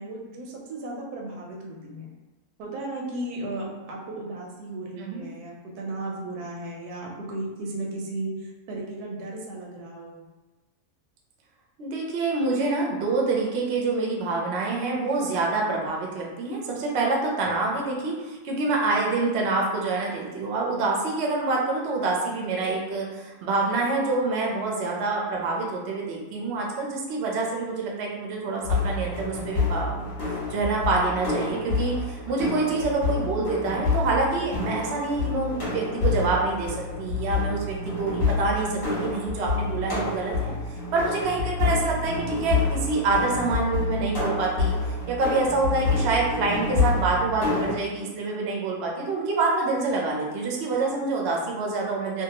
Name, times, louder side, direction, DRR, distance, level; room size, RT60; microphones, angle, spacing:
voice 1, 0.0-2.1 2.6-10.3, right 2 dB, 90° right, -1 dB, 1.2 m, -35 dB
voice 2, 11.8-40.5 40.9-44.7 45.1-52.2, right 3 dB, 60° right, -1 dB, 0.7 m, -26 dB
sound 1, 28.6-47.7, left 4 dB, 35° left, 0.9 m, -28 dB
2.7 x 2.3 x 2.8 m, 1.1 s
omnidirectional pair, 1.6 m